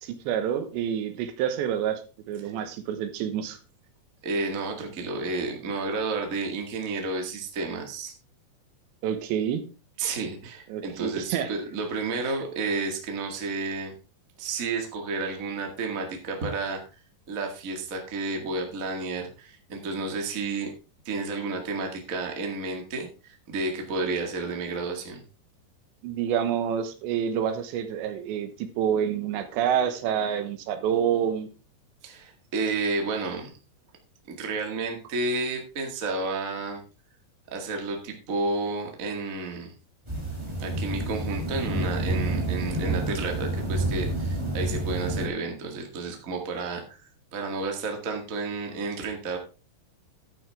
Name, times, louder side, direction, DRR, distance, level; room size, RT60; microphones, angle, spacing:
voice 1, 0.0-2.0 2.3-3.6 9.0-9.6 10.7-11.5 26.0-31.5, right 9 dB, 80° right, 9 dB, 3.3 m, -27 dB
voice 2, 4.2-8.1 10.0-13.9 14.4-16.8 17.3-20.7 21.0-25.2 32.0-33.5 34.3-36.8 37.5-39.7 40.6-47.0 47.3-49.4, right 3 dB, 50° right, 2 dB, 0.9 m, -31 dB
sound 1, 40.1-45.3, right 2 dB, 10° right, 1.7 m, -29 dB
11.0 x 9.2 x 3.5 m, 0.33 s
omnidirectional pair, 5.2 m